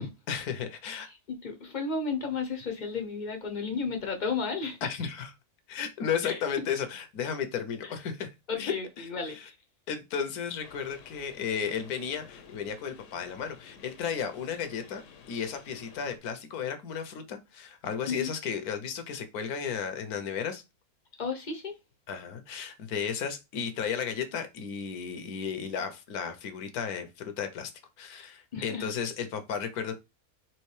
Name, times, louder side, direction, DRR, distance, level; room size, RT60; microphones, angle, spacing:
voice 1, 0.3-1.1 4.8-5.3 5.7-8.3 8.6-9.5 9.9-15.0 15.3-20.6 22.1-27.7 28.0-30.0, left 7 dB, 80° left, 1.2 m, -34 dB
voice 2, 1.1-4.8 6.2-6.7 7.8-7.9 8.5-9.6 18.1-18.3 21.2-21.8 28.5-28.9, left 4 dB, 45° left, 0.7 m, -33 dB
sound 1, 10.6-16.2, left 6 dB, 60° left, 1.0 m, -52 dB
4.4 x 3.0 x 3.2 m
omnidirectional pair, 1.6 m